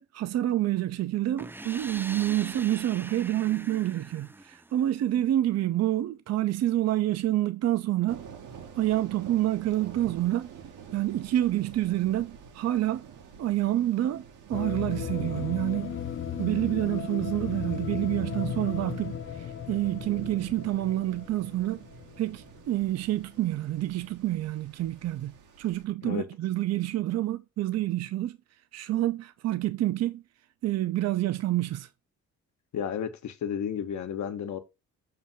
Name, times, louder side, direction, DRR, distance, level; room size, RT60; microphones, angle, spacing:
voice 1, 0.0-8.2 8.8-10.5 10.9-13.0 13.4-16.0 16.4-21.8 22.2-28.4 28.7-30.2 30.6-31.9, right 14 dB, 60° right, 0.5 m, -28 dB
sound 1, 1.4-5.1, right 2 dB, 10° right, 0.3 m, -42 dB
sound 2, 8.1-25.8, right 7 dB, 85° right, 1.3 m, -48 dB
sound 3, 14.5-22.7, left 9 dB, 45° left, 0.6 m, -36 dB
voice 2, 32.7-34.6, left 8 dB, 70° left, 1.0 m, -32 dB
6.7 x 2.6 x 5.7 m
cardioid pair, 90°, 30 cm